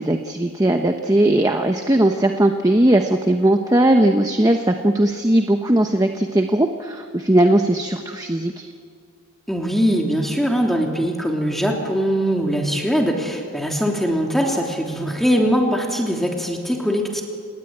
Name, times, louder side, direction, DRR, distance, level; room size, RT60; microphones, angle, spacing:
voice 1, 0.0-8.7, right 1 dB, 15° right, 5 dB, 0.9 m, -18 dB
voice 2, 9.5-17.2, equal, ahead, 0 dB, 3.1 m, -21 dB
29.0 x 18.5 x 8.8 m, 2.1 s
head